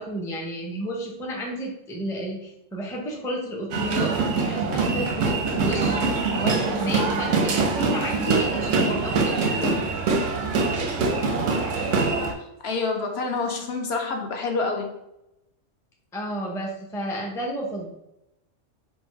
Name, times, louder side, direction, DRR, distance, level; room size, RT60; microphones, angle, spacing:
voice 1, 0.0-4.1 4.4-9.9 16.1-17.9, equal, 5° left, -1 dB, 0.4 m, -31 dB
sound 1, 3.7-12.3, right 4 dB, 90° right, 1.1 m, -24 dB
voice 2, 12.4-14.9, left 3 dB, 65° left, 2 dB, 0.8 m, -27 dB
4.2 x 2.2 x 4.6 m, 0.86 s
omnidirectional pair, 1.3 m